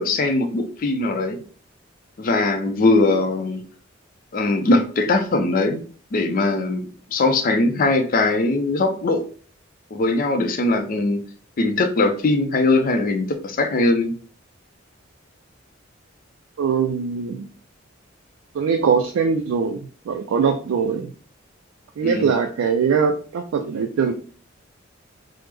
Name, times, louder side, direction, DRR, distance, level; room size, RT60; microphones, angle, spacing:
voice 1, 0.0-1.4 2.2-3.6 4.3-5.8 6.1-9.2 9.9-11.2 11.6-14.1 22.0-22.3, left 2 dB, 45° left, 5 dB, 0.4 m, -20 dB
voice 2, 16.6-17.5 18.5-19.8 20.1-21.1 22.0-24.1, right 6 dB, 80° right, 4 dB, 0.3 m, -21 dB
3.2 x 2.0 x 3.3 m, 0.42 s
head